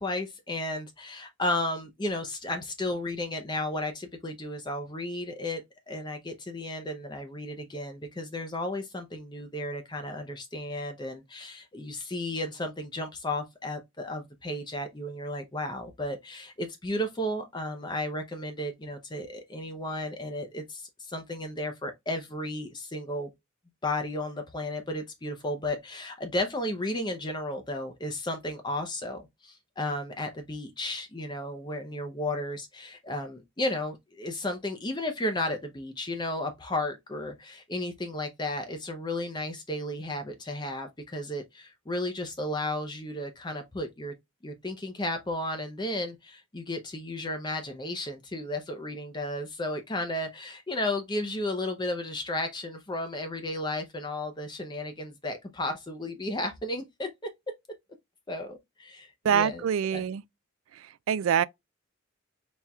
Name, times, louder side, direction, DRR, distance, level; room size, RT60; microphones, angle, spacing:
voice 1, 0.0-5.6 5.9-23.3 23.8-44.1 44.4-57.3 58.3-59.7 59.9-60.0, left 1 dB, 20° left, 0.6 m, -33 dB
voice 2, 59.2-60.2 60.8-61.4, right 8 dB, 80° right, 0.3 m, -25 dB
4.2 x 3.5 x 2.3 m
head